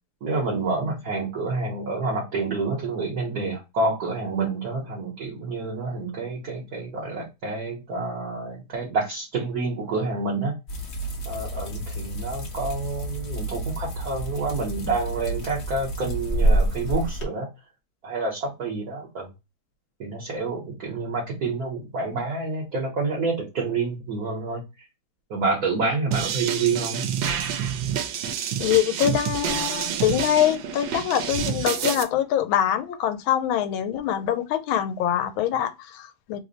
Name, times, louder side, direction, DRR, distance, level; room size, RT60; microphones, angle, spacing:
voice 1, 0.2-10.5 11.3-17.5 18.0-19.3 20.0-24.6 25.3-27.1, right 3 dB, 60° right, 1.2 m, -28 dB
sound 1, 10.7-17.2, right 1 dB, 55° left, 0.8 m, -28 dB
sound 2, 26.1-32.0, right 8 dB, 75° right, 1.3 m, -28 dB
voice 2, 28.6-36.4, left 10 dB, 90° left, 1.4 m, -24 dB
3.4 x 2.1 x 3.8 m
omnidirectional pair, 2.2 m